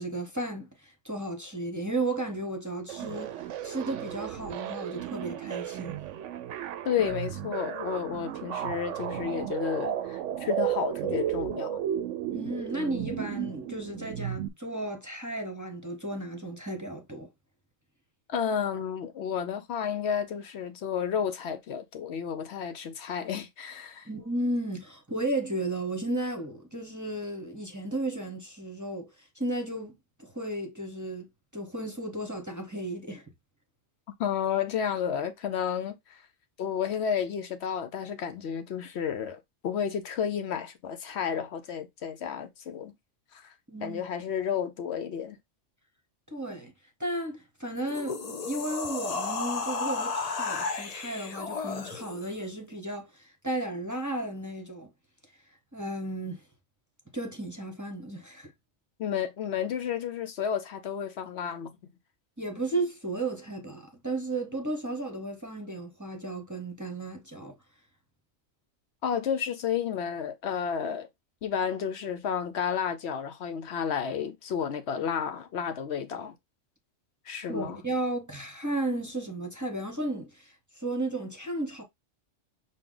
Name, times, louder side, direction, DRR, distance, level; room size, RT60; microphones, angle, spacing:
voice 1, 0.0-6.0 12.3-17.3 24.1-29.1 29.4-31.3 31.5-33.2 43.7-44.0 46.3-46.7 47.0-54.9 55.7-56.4 57.1-58.5 62.4-67.5 77.5-81.8, right 2 dB, 15° right, 0.8 m, -34 dB
sound 1, 2.9-14.5, right 11 dB, 85° right, 0.9 m, -34 dB
voice 2, 6.9-11.8 18.3-24.1 34.2-36.2 36.6-42.9 43.3-43.5 43.8-45.4 59.0-61.7 69.0-71.1 71.4-76.3 77.3-77.8, left 8 dB, 70° left, 0.9 m, -31 dB
sound 2, 47.8-52.4, left 4 dB, 45° left, 0.6 m, -33 dB
6.5 x 2.2 x 3.7 m
omnidirectional pair, 1.2 m